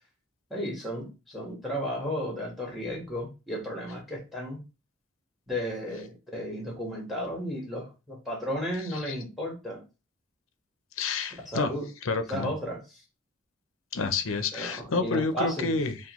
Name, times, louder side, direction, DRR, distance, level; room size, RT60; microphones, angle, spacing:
voice 1, 0.5-4.6 5.5-9.8 11.4-11.9 12.3-13.0 14.5-15.8, equal, ahead, 1.4 m, -34 dB
voice 2, 11.0-11.7 12.0-12.5 13.9-16.0, left 4 dB, 90° left, 0.6 m, -29 dB
5.8 x 2.3 x 3.0 m
head